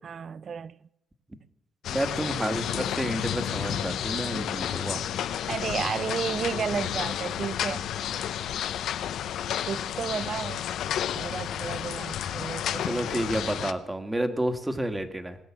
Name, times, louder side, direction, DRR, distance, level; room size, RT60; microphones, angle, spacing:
voice 1, 0.0-0.7 5.5-7.9 8.4-8.6 9.6-10.6 11.2-12.9, right 7 dB, 55° right, 0.4 m, -32 dB
sound 1, 1.8-13.7, left 10 dB, 80° left, 0.7 m, -31 dB
voice 2, 1.9-5.0 12.8-15.4, right 1 dB, 15° right, 1.6 m, -30 dB
18.5 x 8.3 x 7.3 m
cardioid pair, 85°, 0 cm